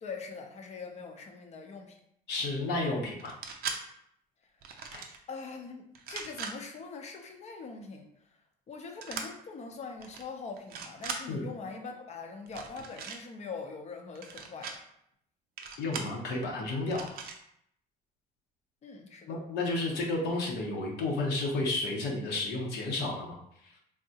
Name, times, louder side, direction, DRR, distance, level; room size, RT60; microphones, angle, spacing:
voice 1, 0.0-2.0 5.3-8.1 8.7-14.7 18.8-19.4, left 4 dB, 40° left, 4 dB, 0.6 m, -42 dB
voice 2, 2.3-3.3 4.9-5.0 11.3-11.4 15.8-17.1 19.3-23.4 23.6-23.8, left 2 dB, 75° left, -2 dB, 0.8 m, -32 dB
sound 1, 3.2-3.8 4.6-5.2 5.9-6.5 9.0-9.3 10.0-10.2 10.6-11.2 12.5-13.2 14.2-14.8 15.6-16.1 16.9-17.4, right 6 dB, 65° right, 0.5 m, -39 dB
3.6 x 2.0 x 2.7 m, 0.74 s
cardioid pair, 110°, 17 cm